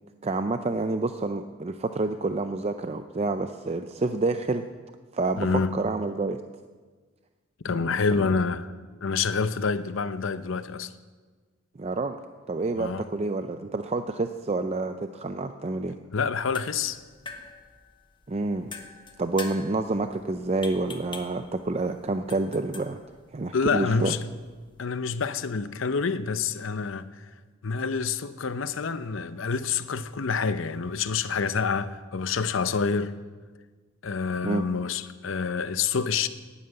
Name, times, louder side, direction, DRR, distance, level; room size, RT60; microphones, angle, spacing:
voice 1, 0.2-4.6 5.1-5.5 5.7-6.4 7.8-8.3 11.8-12.2 12.5-16.0 18.3-18.7 19.2-23.0 23.3-24.1 34.4-34.6, right 3 dB, 30° right, 0.5 m, -28 dB
voice 2, 5.4-5.8 7.6-8.7 9.0-10.9 12.8-13.1 16.1-17.0 23.5-24.2 24.8-27.3 27.6-33.1 34.0-36.3, left 5 dB, 85° left, 0.7 m, -27 dB
sound 1, 16.3-24.9, left 4 dB, 25° left, 1.3 m, -45 dB
11.5 x 11.0 x 8.8 m
head